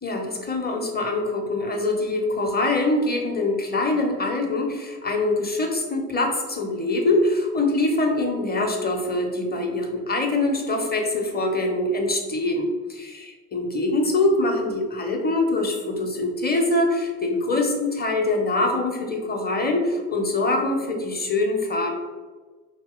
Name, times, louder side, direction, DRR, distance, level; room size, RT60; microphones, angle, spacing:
voice 1, 0.0-21.9, left 2 dB, 20° left, 2 dB, 0.8 m, -24 dB
2.9 x 2.8 x 3.6 m, 1.4 s
figure-of-eight pair, 40°, 46 cm